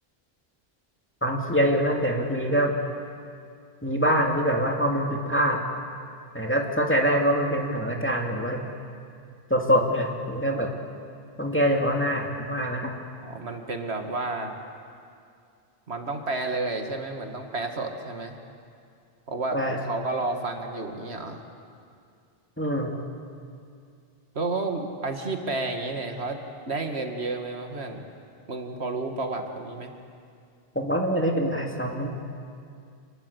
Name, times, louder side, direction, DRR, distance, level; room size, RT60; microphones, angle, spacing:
voice 1, 1.2-2.8 3.8-5.7 6.3-8.6 9.5-10.7 11.4-12.9 19.5-19.8 22.6-23.0 30.7-32.1, equal, 10° left, 0 dB, 2.4 m, -24 dB
voice 2, 13.2-14.6 15.9-18.4 19.3-21.4 24.3-26.4 26.7-28.0 28.5-29.9, right 3 dB, 80° right, 4 dB, 2.2 m, -31 dB
28.0 x 20.5 x 8.2 m, 2.4 s
omnidirectional pair, 1.1 m